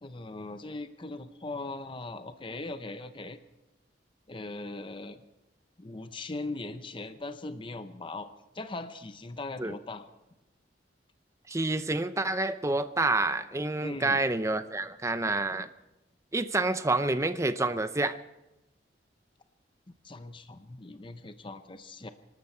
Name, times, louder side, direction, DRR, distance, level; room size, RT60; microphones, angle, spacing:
voice 1, 0.0-3.4 4.3-5.2 5.8-8.3 8.5-10.0 13.8-14.2 20.0-22.1, left 2 dB, 25° left, 10 dB, 0.7 m, -39 dB
voice 2, 11.5-15.7 16.3-18.2, right 2 dB, 15° right, 12 dB, 0.6 m, -28 dB
24.5 x 13.0 x 4.4 m, 0.96 s
head